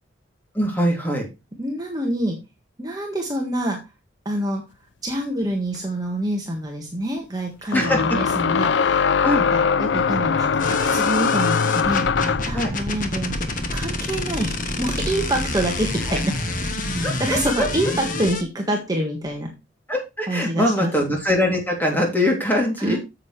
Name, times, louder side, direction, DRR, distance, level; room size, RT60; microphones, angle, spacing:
voice 1, 0.5-1.3 7.7-8.0 9.2-9.4 12.5-12.7 16.1-16.2 17.0-17.7 19.9-23.0, left 1 dB, 10° left, 1 dB, 3.0 m, -22 dB
voice 2, 1.6-2.4 2.8-3.8 4.2-4.6 5.0-9.2 9.5-16.8 17.2-19.5 20.3-20.9 22.8-23.0, right 1 dB, 20° right, 1 dB, 1.6 m, -26 dB
sound 1, 5.8-5.9 7.7-12.6, left 6 dB, 65° left, 0.4 m, -21 dB
sound 2, 10.6-18.4, left 2 dB, 45° left, 1.5 m, -27 dB
9.5 x 7.8 x 3.3 m, 0.25 s
head